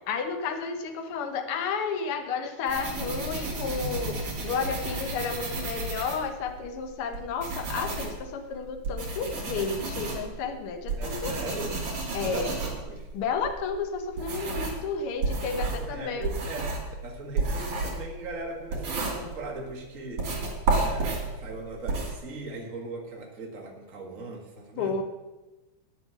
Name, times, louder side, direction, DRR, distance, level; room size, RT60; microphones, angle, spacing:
voice 1, 0.0-11.6 12.1-12.5 13.1-16.3 24.8-25.0, left 5 dB, 60° left, 6 dB, 1.7 m, -32 dB
sound 1, 2.7-6.7 7.1-14.8 15.2-19.7 20.1-22.1, right 3 dB, 70° right, 4.4 m, -32 dB
voice 2, 11.0-11.8 12.2-13.1 15.5-20.2 20.8-24.9, right 2 dB, 30° right, 0 dB, 1.9 m, -39 dB
10.0 x 9.2 x 6.8 m, 1.1 s
omnidirectional pair, 3.3 m